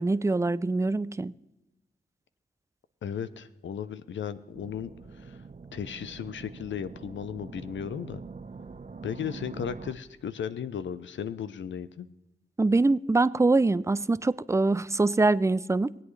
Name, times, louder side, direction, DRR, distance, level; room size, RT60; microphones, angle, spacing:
voice 1, 0.0-1.3 12.6-16.0, right 3 dB, 15° right, 17 dB, 0.4 m, -24 dB
voice 2, 3.0-5.4 5.7-8.2 9.0-12.1, left 8 dB, 80° left, 14 dB, 0.6 m, -35 dB
sound 1, 4.5-9.9, right 4 dB, 40° right, 0.8 m, -44 dB
19.5 x 8.4 x 3.2 m, 0.96 s
cardioid pair, 45°, 19 cm